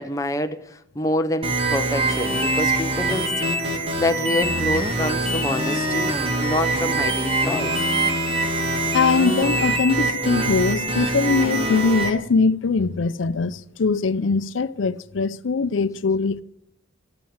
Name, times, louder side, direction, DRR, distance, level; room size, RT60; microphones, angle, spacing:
voice 1, 0.0-7.8, left 2 dB, 15° left, 0.7 m, -27 dB
sound 1, 1.4-12.1, right 2 dB, 30° right, 1.6 m, -23 dB
voice 2, 8.9-16.4, left 4 dB, 85° left, 0.5 m, -21 dB
12.5 x 8.7 x 8.7 m
head